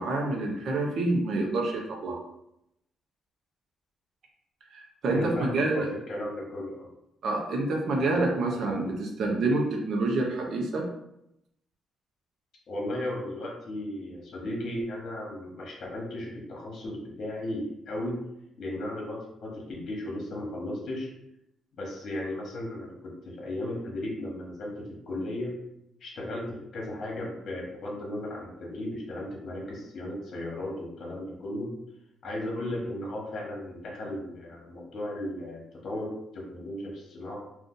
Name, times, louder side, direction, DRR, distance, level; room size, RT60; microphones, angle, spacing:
voice 1, 0.0-2.2 4.7-5.9 7.2-10.8, right 2 dB, 65° right, 1 dB, 0.7 m, -27 dB
voice 2, 5.1-6.9 12.7-18.2 18.6-21.1 21.8-25.6 26.0-31.7 32.2-37.4, left 1 dB, 60° left, -2 dB, 1.0 m, -35 dB
2.6 x 2.4 x 3.8 m, 0.82 s
cardioid pair, 90°, 0 cm